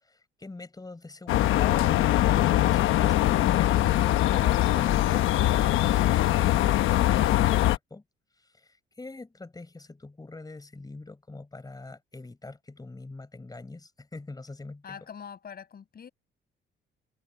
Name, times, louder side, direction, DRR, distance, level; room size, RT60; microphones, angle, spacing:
voice 1, 0.0-8.0 8.4-15.0, left 3 dB, 20° left, 5.0 m, -43 dB
sound 1, 1.3-7.8, left 14 dB, 85° left, 1.1 m, -22 dB
voice 2, 14.8-16.1, left 7 dB, 50° left, 6.1 m, -43 dB
cardioid pair, 90°, 20 cm